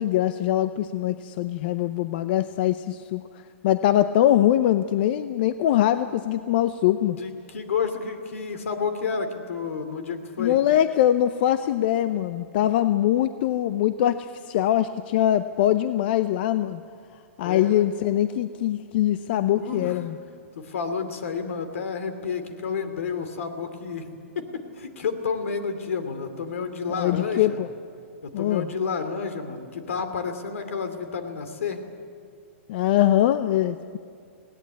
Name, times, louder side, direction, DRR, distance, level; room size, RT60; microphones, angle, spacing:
voice 1, 0.0-3.2 3.6-7.2 10.4-16.8 17.4-20.2 26.9-27.7 28.3-28.7 32.7-34.0, left 12 dB, 45° left, 12 dB, 0.6 m, -22 dB
voice 2, 7.1-10.6 17.4-17.9 19.6-20.0 20.6-24.5 24.7-27.6 28.2-31.8, left 5 dB, 75° left, 9 dB, 2.8 m, -30 dB
19.5 x 17.5 x 9.5 m, 2.3 s
hypercardioid pair, 155°, 7 cm